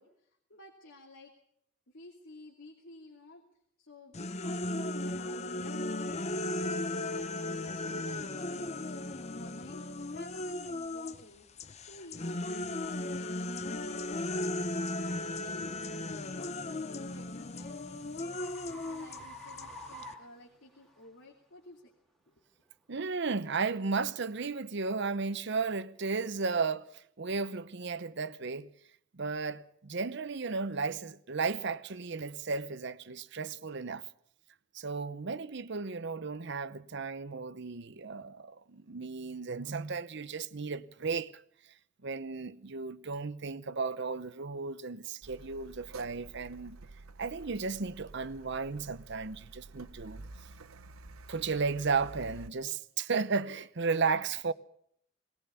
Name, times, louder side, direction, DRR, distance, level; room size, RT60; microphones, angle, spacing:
voice 1, 0.0-1.3 1.9-3.4 3.8-5.8 6.1-7.2 7.4-13.3 13.7-14.1 14.4-16.6 16.9-21.9 22.3-22.4, left 1 dB, 70° left, 2.6 m, -54 dB
sound 1, 4.1-11.2 11.6-20.1, left 2 dB, 30° left, 0.7 m, -36 dB
sound 2, 12.3-12.4 13.0-13.2 13.8-14.0 16.6-21.1, left 1 dB, ahead, 2.0 m, -49 dB
voice 2, 22.9-28.7 29.1-34.0 34.7-41.4 42.0-46.8 47.2-50.2 51.3-54.5, right 4 dB, 55° right, 0.8 m, -34 dB
Car, 45.2-52.5, right 3 dB, 90° right, 0.9 m, -50 dB
19.5 x 19.0 x 6.9 m
head